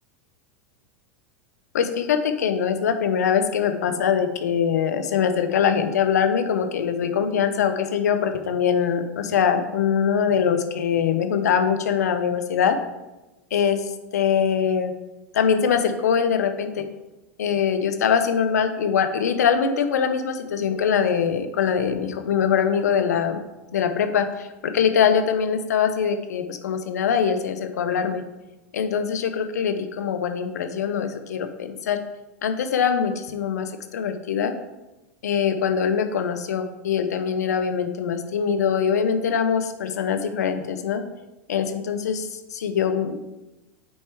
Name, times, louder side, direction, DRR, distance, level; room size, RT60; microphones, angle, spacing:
voice 1, 1.7-12.8 13.5-14.9 15.3-16.9 17.4-23.4 23.7-28.2 28.7-32.0 32.4-34.5 35.2-41.0 41.5-43.2, left 7 dB, 85° left, 8 dB, 0.8 m, -23 dB
9.6 x 4.3 x 3.5 m, 1.0 s
hypercardioid pair, 105°, 9 cm